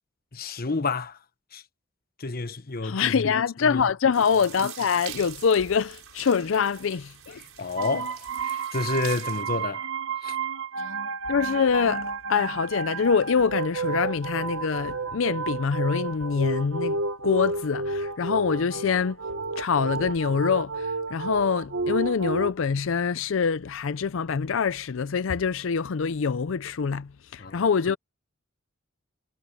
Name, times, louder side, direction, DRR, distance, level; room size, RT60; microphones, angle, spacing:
voice 1, 0.3-1.2 1.5-1.6 2.2-3.3 3.6-3.9 7.4-9.9 10.2-10.4 27.4-27.6, left 3 dB, 45° left, 1.1 m, -30 dB
voice 2, 2.8-7.4 11.3-17.0 17.2-19.2 19.6-28.0, left 6 dB, 70° left, 0.5 m, -25 dB
sound 1, 4.1-9.4, right 13 dB, 85° right, 4.7 m, -43 dB
sound 2, 7.8-22.5, right 4 dB, 65° right, 1.2 m, -31 dB
head